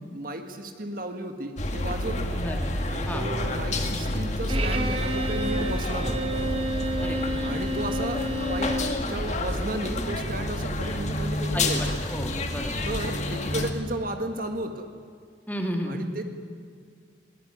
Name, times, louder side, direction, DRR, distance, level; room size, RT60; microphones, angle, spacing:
voice 1, 0.0-2.4 2.9-6.3 7.4-12.0 12.8-14.9 15.9-16.3, right 1 dB, 50° right, 6 dB, 1.8 m, -34 dB
sound 1, 1.6-13.7, left 1 dB, 40° left, 2.1 m, -29 dB
voice 2, 2.3-2.7 3.1-3.3 7.0-7.6 11.5-12.8 15.5-16.0, equal, 10° left, 3 dB, 2.6 m, -33 dB
Bowed string instrument, 4.5-9.0, equal, 30° right, 1.8 m, -30 dB
22.0 x 19.5 x 9.3 m, 2.2 s
head